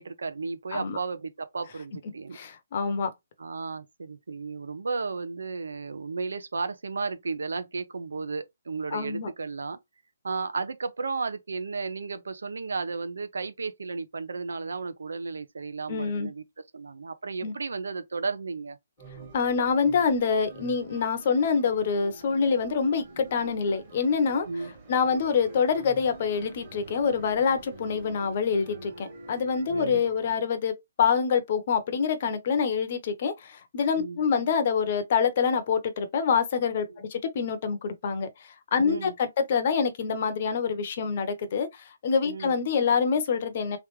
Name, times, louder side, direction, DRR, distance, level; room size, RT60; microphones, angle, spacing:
voice 1, 0.0-2.4 3.4-9.8 10.2-16.4 16.7-18.8 24.5-24.7 29.7-30.0 34.0-34.2 36.9-37.0 38.8-39.2 42.3-42.6, right 4 dB, 80° right, 0.8 m, -34 dB
voice 2, 2.3-3.1 8.9-9.3 15.9-16.3 17.4-17.5 19.3-24.5 24.9-38.3 38.7-43.8, left 6 dB, 30° left, 0.8 m, -26 dB
sound 1, 19.0-30.4, right 2 dB, 20° right, 1.2 m, -46 dB
3.6 x 3.2 x 3.1 m
hypercardioid pair, 175°, 0 cm